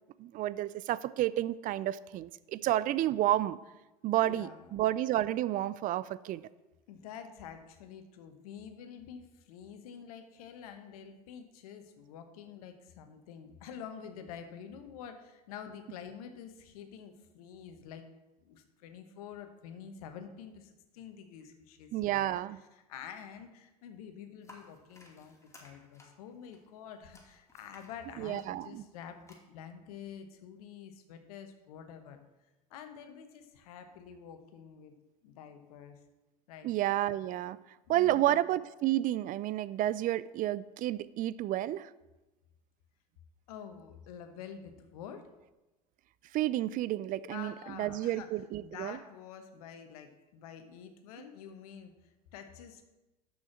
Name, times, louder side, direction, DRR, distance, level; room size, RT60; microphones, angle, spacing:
voice 1, 0.2-3.6 4.0-6.4 21.9-22.6 28.2-28.8 36.6-37.6 37.9-41.9 46.3-49.0, right 14 dB, 45° right, 18 dB, 0.4 m, -31 dB
voice 2, 4.1-4.7 6.9-18.1 18.4-22.4 22.7-32.2 32.7-34.9 35.2-36.0 36.5-36.7 37.9-38.4 43.5-45.3 47.1-48.3 48.6-52.8, left 8 dB, 75° left, 7 dB, 1.1 m, -48 dB
sound 1, 24.4-29.3, left 2 dB, 15° left, 2.6 m, -59 dB
6.4 x 6.3 x 7.2 m, 1.1 s
hypercardioid pair, 75°, 19 cm